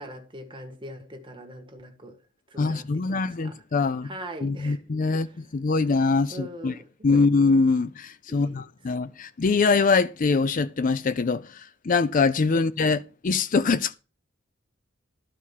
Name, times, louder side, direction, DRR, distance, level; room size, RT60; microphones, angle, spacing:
voice 1, 0.0-2.2 2.5-3.6 4.0-4.8 5.1-5.3 6.3-7.2 8.3-8.6, right 1 dB, 25° right, 1.5 m, -42 dB
voice 2, 2.6-4.1 4.4-6.7 7.0-14.0, left 4 dB, 40° left, 0.4 m, -23 dB
12.5 x 4.6 x 7.2 m
head